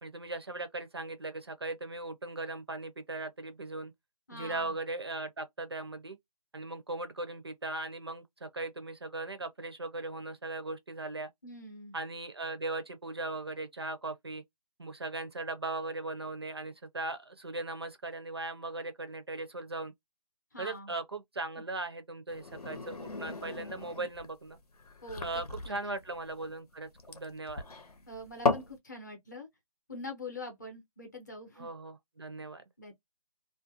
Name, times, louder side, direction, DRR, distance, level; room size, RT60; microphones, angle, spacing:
voice 1, 0.0-3.9 4.3-6.2 6.5-11.3 11.9-14.4 14.8-19.9 20.6-24.6 25.2-27.6 31.6-32.6, right 2 dB, 40° right, 0.4 m, -38 dB
voice 2, 4.3-4.7 11.4-12.0 20.5-20.9 25.0-25.3 25.6-26.0 28.1-29.5 29.9-31.7 32.8-32.9, left 2 dB, 30° left, 0.7 m, -44 dB
sound 1, 22.3-28.8, left 4 dB, 75° left, 0.8 m, -36 dB
2.4 x 2.1 x 2.6 m
hypercardioid pair, 175°, 20 cm